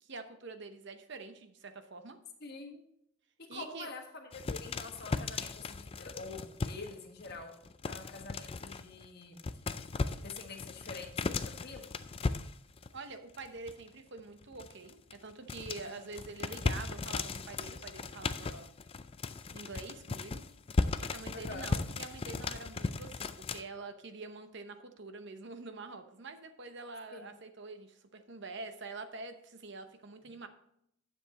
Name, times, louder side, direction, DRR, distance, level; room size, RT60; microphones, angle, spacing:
voice 1, 0.0-2.2 3.5-3.9 12.9-18.7 19.5-20.4 21.0-30.5, right 3 dB, 55° right, 8 dB, 0.8 m, -46 dB
voice 2, 2.4-2.8 3.4-7.5 7.9-9.4 10.2-11.9 15.9-16.1 21.3-21.7 27.1-27.3, left 3 dB, 50° left, 4 dB, 1.4 m, -46 dB
sound 1, 4.3-6.9 7.2-9.1 9.4-13.0 13.3-13.9 14.2-23.6, left 3 dB, 25° left, 0.3 m, -37 dB
9.9 x 7.1 x 4.1 m, 0.74 s
head